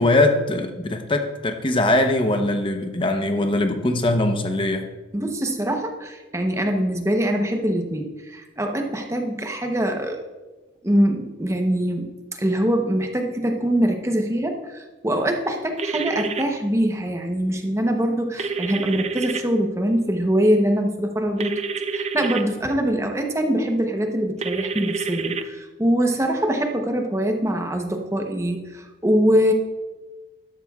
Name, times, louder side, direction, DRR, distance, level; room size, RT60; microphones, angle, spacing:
voice 1, 0.0-4.9, left 2 dB, 25° left, 6 dB, 0.8 m, -21 dB
voice 2, 5.1-10.2 10.8-21.6 21.9-29.5, equal, 15° right, 4 dB, 0.8 m, -23 dB
sound 1, 15.8-16.4 18.4-19.4 21.4-22.4 24.4-25.4, right 5 dB, 30° right, 0.4 m, -28 dB
12.0 x 12.0 x 2.4 m, 1.2 s
head